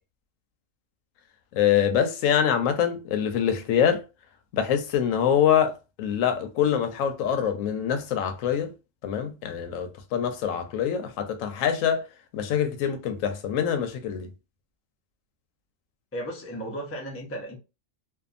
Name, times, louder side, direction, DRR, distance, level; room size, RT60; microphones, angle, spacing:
voice 1, 1.5-4.0 4.5-8.7 9.0-12.1 12.3-14.3, left 9 dB, 85° left, 1.0 m, -25 dB
voice 2, 16.1-17.6, right 1 dB, 20° left, 0.3 m, -35 dB
2.7 x 2.3 x 2.4 m
omnidirectional pair, 1.3 m